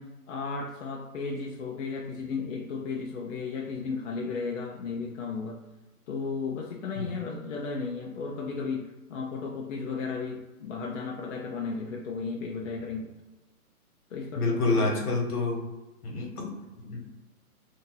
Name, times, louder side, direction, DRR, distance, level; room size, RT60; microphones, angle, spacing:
voice 1, 0.0-5.6 6.1-13.1 14.1-14.9, left 4 dB, 55° left, -1 dB, 0.6 m, -34 dB
voice 2, 14.3-15.6 16.0-16.5 16.8-17.0, left 3 dB, 75° left, -1 dB, 1.4 m, -27 dB
2.8 x 2.6 x 3.8 m, 1.1 s
hypercardioid pair, 145°, 45 cm